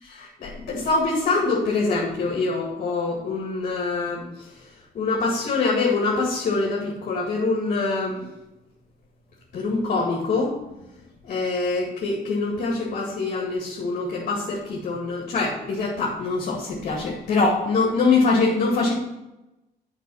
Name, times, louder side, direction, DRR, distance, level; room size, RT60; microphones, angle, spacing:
voice 1, 0.0-4.2 4.9-8.3 9.5-10.6 11.2-18.9, left 3 dB, 50° left, -3 dB, 2.2 m, -24 dB
8.3 x 5.2 x 5.7 m, 0.97 s
cardioid pair, 110°, 17 cm